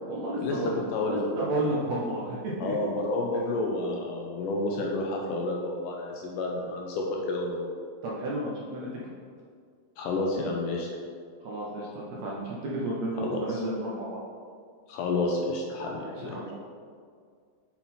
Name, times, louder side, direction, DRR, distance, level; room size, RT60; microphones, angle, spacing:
voice 1, 0.0-2.7 8.0-8.9 11.4-14.2 16.0-16.6, right 1 dB, 75° right, -5 dB, 1.6 m, -32 dB
voice 2, 0.9-1.2 2.6-7.7 10.0-10.9 13.2-13.6 14.9-16.4, left 2 dB, 80° left, -1 dB, 2.0 m, -30 dB
7.2 x 4.1 x 4.2 m, 2.1 s
omnidirectional pair, 4.1 m